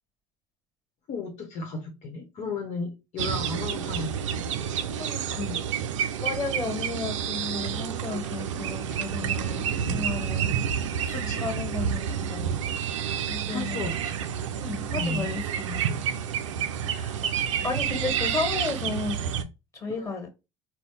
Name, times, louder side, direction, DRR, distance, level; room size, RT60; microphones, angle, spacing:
voice 1, 1.1-4.4 9.7-10.0 11.1-11.5 13.5-14.2 14.9-15.3 20.0-20.1, left 3 dB, 50° left, 1.0 m, -34 dB
sound 1, 3.2-19.4, right 8 dB, 90° right, 0.4 m, -29 dB
voice 2, 4.9-5.6 6.2-10.5 11.0-12.6 13.3-13.9 14.6-16.0 16.9-17.2 17.6-19.2 19.7-20.3, left 3 dB, 20° left, 1.8 m, -33 dB
4.1 x 2.2 x 3.3 m
hypercardioid pair, 75°, 16 cm